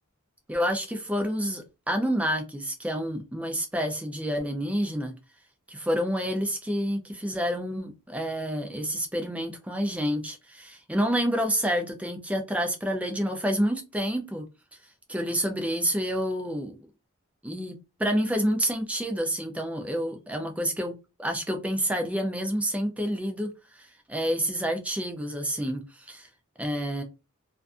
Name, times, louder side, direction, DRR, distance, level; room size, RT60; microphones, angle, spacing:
voice 1, 0.5-5.1 5.7-14.4 15.1-16.8 17.4-17.7 18.0-20.9 21.2-26.3 26.6-27.0, equal, 5° right, 0.4 m, -28 dB
2.5 x 2.3 x 2.5 m
head